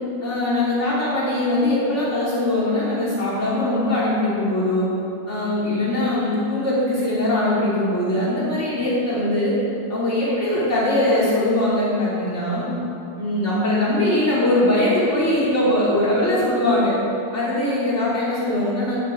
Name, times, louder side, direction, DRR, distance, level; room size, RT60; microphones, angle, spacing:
voice 1, 0.2-4.8 5.3-9.5 9.9-12.7 13.2-16.9 17.3-19.0, left 1 dB, 25° left, -8 dB, 3.2 m, -21 dB
10.0 x 9.9 x 4.7 m, 2.8 s
omnidirectional pair, 3.4 m